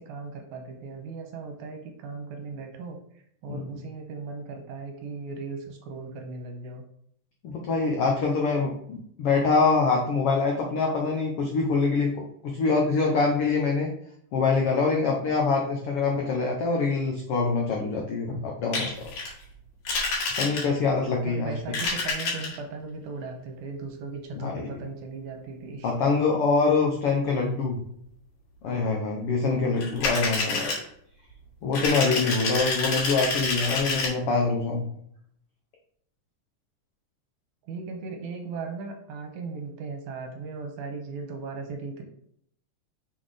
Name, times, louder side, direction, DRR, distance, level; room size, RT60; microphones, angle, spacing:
voice 1, 0.0-3.0 3.4-6.8 21.2-25.9 37.7-42.0, right 4 dB, 75° right, 4 dB, 2.1 m, -37 dB
voice 2, 7.4-13.9 14.3-18.9 20.4-21.5 24.3-24.7 25.8-27.8 28.6-30.8 31.6-34.9, left 4 dB, 85° left, 0 dB, 1.2 m, -25 dB
sound 1, 18.7-19.3 19.9-20.9 21.6-22.6 29.8-30.8 31.7-34.1, left 3 dB, 65° left, 3.3 m, -28 dB
5.9 x 4.0 x 4.9 m, 0.68 s
omnidirectional pair, 3.8 m